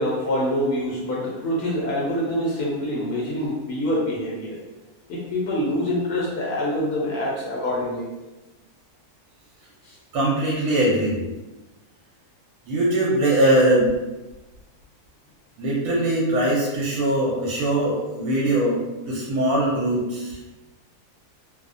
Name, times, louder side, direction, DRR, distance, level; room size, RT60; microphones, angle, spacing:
voice 1, 0.0-4.6 5.1-8.1 9.8-10.0, left 1 dB, 75° left, -5 dB, 1.1 m, -25 dB
voice 2, 10.1-11.2 12.7-13.9 15.6-18.8 19.1-20.5, right 1 dB, 70° right, -4 dB, 1.0 m, -21 dB
2.7 x 2.0 x 2.5 m, 1.1 s
omnidirectional pair, 1.7 m